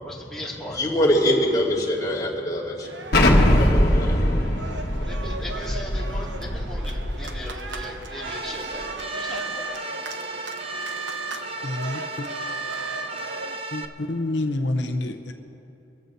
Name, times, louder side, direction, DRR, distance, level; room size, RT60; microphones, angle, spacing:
voice 1, 0.0-0.8 5.0-9.7, left 1 dB, 5° left, -6 dB, 2.2 m, -38 dB
voice 2, 0.7-2.9 3.5-4.2, equal, 20° left, -5 dB, 2.4 m, -23 dB
sound 1, 2.8-13.6, right 3 dB, 70° right, 1.0 m, -38 dB
Explosion, 3.1-7.8, left 1 dB, 60° left, 1.5 m, -21 dB
sound 2, 8.2-13.8, right 3 dB, 30° right, 0.7 m, -33 dB
voice 3, 11.6-12.3 13.7-15.3, left 2 dB, 75° left, 5 dB, 0.7 m, -28 dB
25.0 x 14.5 x 2.7 m, 2.9 s
head